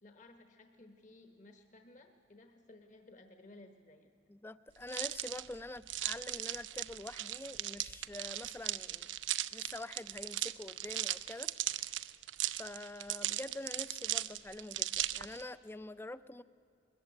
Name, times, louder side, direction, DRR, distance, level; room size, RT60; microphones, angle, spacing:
voice 1, 0.0-4.1, left 2 dB, 40° left, 6 dB, 1.1 m, -57 dB
voice 2, 4.3-9.2 9.5-11.5 12.6-16.4, left 2 dB, 10° left, 16 dB, 0.4 m, -46 dB
sound 1, 4.9-15.4, right 14 dB, 85° right, 0.6 m, -38 dB
21.5 x 14.5 x 9.5 m, 2.7 s
head